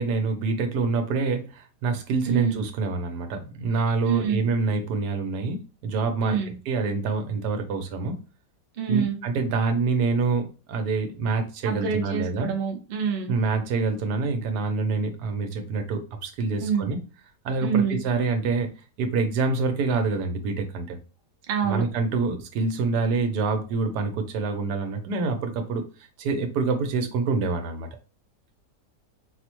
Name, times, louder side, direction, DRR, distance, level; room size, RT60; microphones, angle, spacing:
voice 1, 0.0-6.4 6.7-8.2 8.9-12.5 13.3-17.0 17.4-18.7 19.0-21.0 21.6-27.9, right 4 dB, 80° right, 5 dB, 1.2 m, -26 dB
voice 2, 2.3-2.6 4.1-4.4 6.2-6.5 8.8-9.2 11.6-13.3 16.6-16.9 17.6-18.0 21.5-21.9, right 7 dB, 55° right, 2 dB, 0.6 m, -26 dB
4.3 x 2.1 x 2.9 m, 0.35 s
omnidirectional pair, 1.8 m